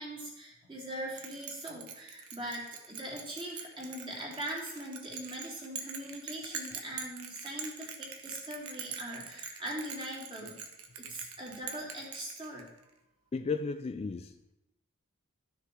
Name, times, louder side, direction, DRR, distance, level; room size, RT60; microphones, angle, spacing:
voice 1, 0.0-10.6 11.0-12.7, right 1 dB, 25° right, 2.7 m, -41 dB
Bell, 1.2-12.8, right 6 dB, 85° right, 1.3 m, -43 dB
voice 2, 13.3-14.5, left 4 dB, 30° left, 0.3 m, -34 dB
12.5 x 6.6 x 4.6 m
head